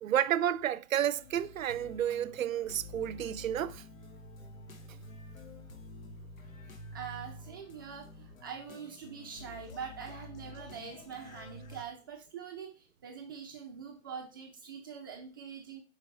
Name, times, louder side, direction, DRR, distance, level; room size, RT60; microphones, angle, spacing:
voice 1, 0.0-3.8, right 10 dB, 80° right, 0.6 m, -31 dB
sound 1, 1.1-11.8, left 2 dB, 80° left, 1.2 m, -49 dB
voice 2, 6.9-15.8, right 7 dB, 15° right, 0.4 m, -44 dB
5.0 x 4.8 x 4.3 m
hypercardioid pair, 140°, 40 cm